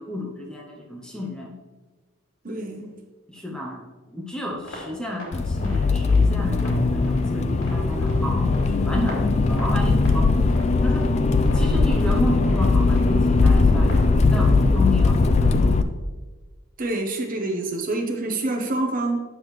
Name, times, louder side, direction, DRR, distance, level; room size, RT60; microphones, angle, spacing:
voice 1, 0.0-1.6 3.3-10.4 10.8-11.1 11.5-16.1, left 1 dB, 5° left, -1 dB, 0.7 m, -32 dB
voice 2, 2.4-2.9 16.8-19.2, right 2 dB, 40° right, 3 dB, 0.8 m, -26 dB
sound 1, 4.5-14.4, left 1 dB, 85° left, 2.5 m, -39 dB
Accelerating revving vroom, 5.3-15.8, left 3 dB, 30° left, 0.3 m, -19 dB
9.1 x 6.1 x 3.2 m, 1.3 s
head